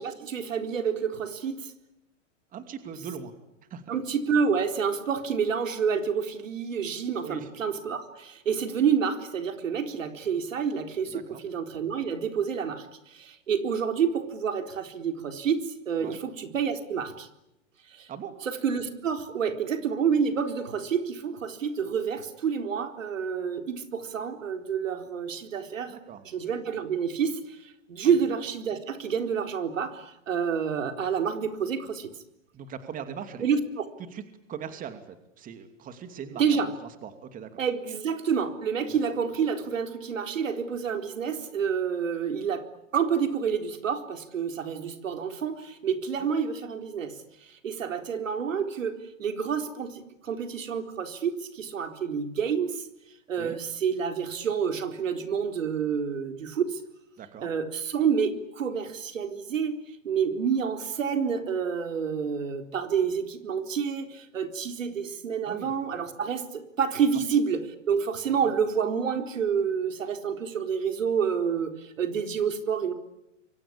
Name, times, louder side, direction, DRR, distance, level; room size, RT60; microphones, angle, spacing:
voice 1, 0.0-1.7 3.9-17.3 17.9-18.1 18.4-25.9 26.2-32.1 33.4-33.8 36.3-36.7 37.6-42.7 42.9-52.9 53.3-56.8 57.4-59.8 60.0-72.9, right 6 dB, 85° right, 6 dB, 4.2 m, -28 dB
voice 2, 2.5-3.3 3.7-4.0 7.2-7.5 11.1-11.4 16.0-16.2 18.1-18.3 25.9-26.2 28.0-28.2 32.5-33.5 34.1-34.2 34.5-37.6 38.9-39.0 46.2-46.3 53.4-53.6 57.2-57.5 65.4-65.7 67.1-67.2 68.2-68.5, right 7 dB, 20° right, 8 dB, 2.7 m, -40 dB
28.0 x 24.5 x 8.8 m, 0.86 s
hypercardioid pair, 140°, 38 cm